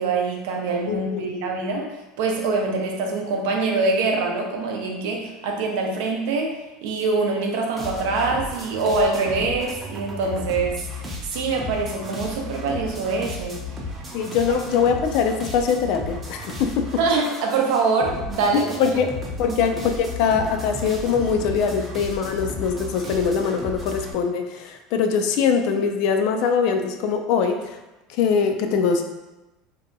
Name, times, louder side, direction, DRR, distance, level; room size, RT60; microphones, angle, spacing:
voice 1, 0.0-11.0 11.3-13.6 17.0-18.7 19.5-19.6, right 3 dB, 75° right, 1 dB, 0.5 m, -24 dB
voice 2, 0.9-1.7 14.1-16.9 18.5-19.1 19.4-27.8 28.1-29.0, left 6 dB, 65° left, 6 dB, 0.3 m, -22 dB
sound 1, 7.7-24.1, left 2 dB, 20° right, 0.5 m, -34 dB
2.7 x 2.2 x 2.5 m, 1.0 s
supercardioid pair, 130°, 0 cm